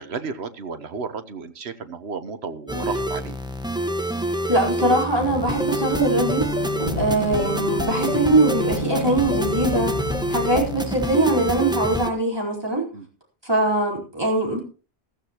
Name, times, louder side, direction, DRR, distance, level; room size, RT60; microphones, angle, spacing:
voice 1, 0.0-3.4 12.9-13.1, right 5 dB, 85° right, 11 dB, 1.4 m, -33 dB
sound 1, 2.7-12.1, right 1 dB, 5° right, 1.2 m, -27 dB
voice 2, 4.1-6.5 6.9-10.0 10.3-12.9 13.4-14.6, right 2 dB, 25° right, -1 dB, 4.3 m, -22 dB
sound 2, 5.2-10.9, left 4 dB, 45° left, 0.8 m, -31 dB
sound 3, 6.8-8.4, left 2 dB, 55° right, 3.2 m, -33 dB
15.0 x 15.0 x 3.0 m, 0.35 s
omnidirectional pair, 1.1 m